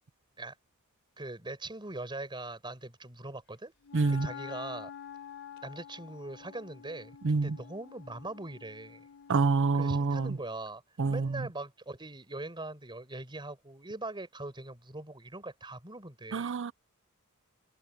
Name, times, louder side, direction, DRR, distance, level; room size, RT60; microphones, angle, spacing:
voice 1, 1.2-3.7 4.1-4.9 5.6-9.0 9.7-10.8 11.1-16.6, right 2 dB, 20° right, 5.1 m, -41 dB
Wind instrument woodwind instrument, 3.8-10.5, left 8 dB, 55° left, 3.8 m, -48 dB
voice 2, 3.9-4.3 7.2-7.6 9.3-10.4 11.0-11.5 16.3-16.7, right 4 dB, 55° right, 0.6 m, -27 dB
head